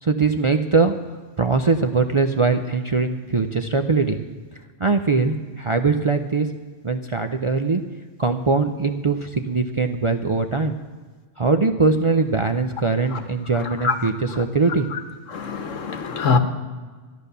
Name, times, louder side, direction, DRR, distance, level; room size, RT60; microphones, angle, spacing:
voice 1, 0.0-1.0 1.4-4.2 4.8-6.5 6.8-7.8 8.2-10.8 11.4-14.9, right 4 dB, 40° right, 0.4 m, -21 dB
voice 2, 15.3-16.4, left 5 dB, 90° left, 1.4 m, -22 dB
13.5 x 10.5 x 6.7 m
omnidirectional pair, 1.3 m